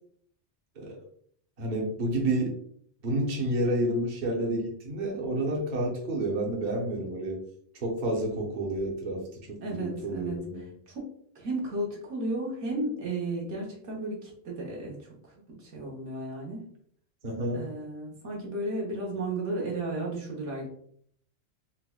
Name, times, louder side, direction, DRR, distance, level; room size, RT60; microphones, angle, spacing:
voice 1, 1.6-2.5 3.0-7.4 7.8-10.7 17.2-17.7, right 1 dB, 45° right, -2 dB, 0.8 m, -30 dB
voice 2, 9.6-10.5 10.9-11.1 11.3-16.7 17.5-20.7, right 2 dB, 85° right, -3 dB, 1.3 m, -34 dB
4.0 x 2.1 x 2.3 m, 0.63 s
omnidirectional pair, 1.2 m